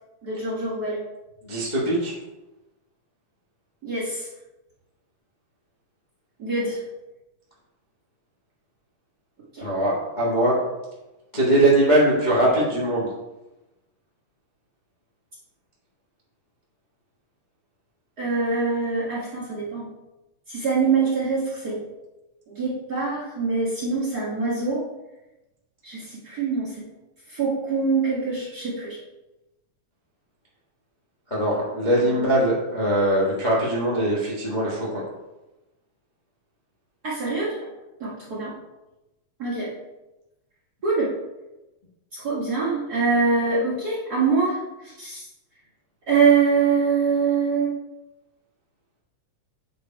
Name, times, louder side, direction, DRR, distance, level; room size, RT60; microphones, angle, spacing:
voice 1, 0.2-1.0 3.8-4.3 6.4-6.8 9.5-9.7 18.2-19.9 20.5-21.8 22.5-24.8 25.8-26.8 27.3-29.0 32.0-32.3 37.0-37.7 38.0-38.5 39.4-39.8 40.8-41.1 42.1-45.2 46.1-47.7, right 4 dB, 40° right, -7 dB, 1.5 m, -24 dB
voice 2, 1.4-2.1 9.6-10.6 11.3-13.1 31.3-35.0, right 1 dB, 25° left, -6 dB, 1.1 m, -21 dB
8.3 x 4.2 x 4.5 m, 1.0 s
omnidirectional pair, 3.4 m